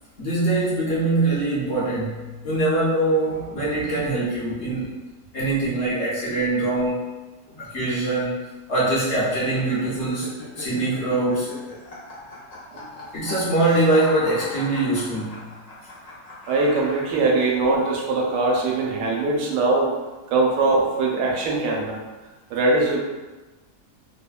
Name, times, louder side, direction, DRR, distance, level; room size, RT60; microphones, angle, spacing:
voice 1, 0.2-4.9 5.3-7.0 7.5-10.3 10.6-11.6 13.1-15.5, right 2 dB, 55° left, -8 dB, 0.8 m, -23 dB
sound 1, 9.0-17.5, left 2 dB, 90° left, 0.3 m, -38 dB
voice 2, 16.5-19.9 20.3-22.0 22.5-23.0, right 3 dB, 85° right, -1 dB, 1.2 m, -21 dB
3.2 x 2.1 x 2.3 m, 1.2 s
omnidirectional pair, 1.8 m